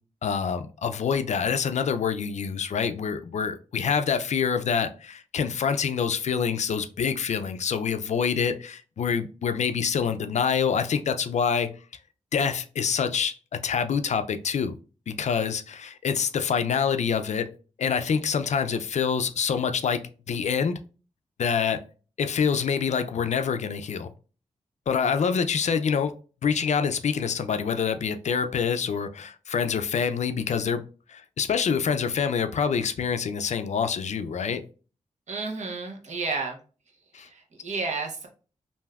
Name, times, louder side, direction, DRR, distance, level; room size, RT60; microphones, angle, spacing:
voice 1, 0.2-11.7 12.3-13.4 13.6-14.8 15.1-17.5 17.8-20.0 20.3-20.7 21.4-21.8 22.2-24.1 24.9-26.1 26.4-30.8 31.1-34.6 37.1-37.3, left 6 dB, 65° left, 0.4 m, -26 dB
voice 2, 35.3-36.6 37.2-38.3, right 4 dB, 65° right, 0.9 m, -31 dB
3.3 x 2.6 x 2.3 m
cardioid pair, 75°, 13 cm